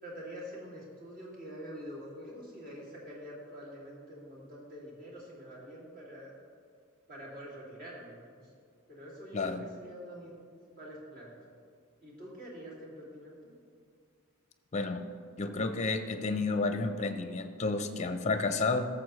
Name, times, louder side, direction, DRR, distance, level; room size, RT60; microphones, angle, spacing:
voice 1, 0.0-6.3 7.1-8.2 8.9-11.4 12.0-13.6, equal, 40° right, -6 dB, 2.6 m, -46 dB
voice 2, 9.3-9.6 14.7-15.0 15.4-18.9, left 3 dB, 35° left, 8 dB, 0.6 m, -31 dB
14.0 x 7.0 x 3.1 m, 2.2 s
head